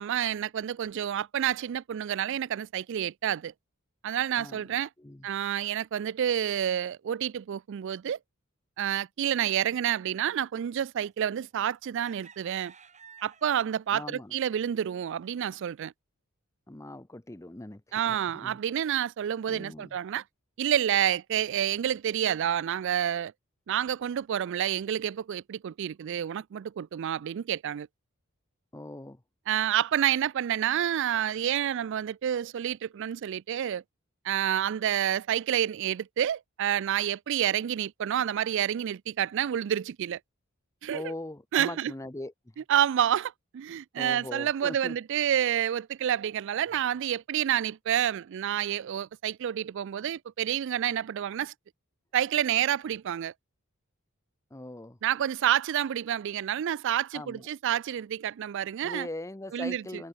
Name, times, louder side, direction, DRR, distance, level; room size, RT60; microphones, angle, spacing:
voice 1, 0.0-3.5 4.0-4.9 5.2-8.2 8.8-12.7 13.2-15.9 17.9-20.2 20.6-23.3 23.7-27.9 29.5-33.8 34.2-40.2 40.8-41.1 41.5-41.9 42.7-51.5 52.1-53.3 55.0-59.1 59.5-60.0, right 10 dB, 60° right, 0.3 m, -29 dB
voice 2, 4.4-5.3 13.9-14.3 16.7-18.6 19.5-20.0 28.7-29.2 40.9-42.3 44.0-45.0 54.5-55.0 57.1-57.5 58.8-60.1, left 1 dB, 15° left, 0.7 m, -41 dB
sound 1, 11.3-11.5 12.0-13.8 14.3-14.5 14.9-15.1, right 6 dB, 35° right, 2.9 m, -53 dB
head